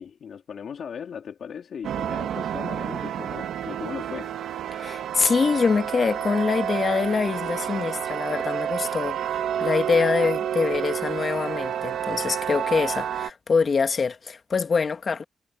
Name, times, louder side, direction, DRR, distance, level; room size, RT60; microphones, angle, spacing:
voice 1, 0.0-4.3, left 7 dB, 70° left, 2.6 m, -38 dB
sound 1, 1.8-13.3, right 9 dB, 85° right, 1.9 m, -29 dB
voice 2, 4.7-15.2, left 5 dB, 50° left, 1.5 m, -24 dB
cardioid pair, 75°, 0 cm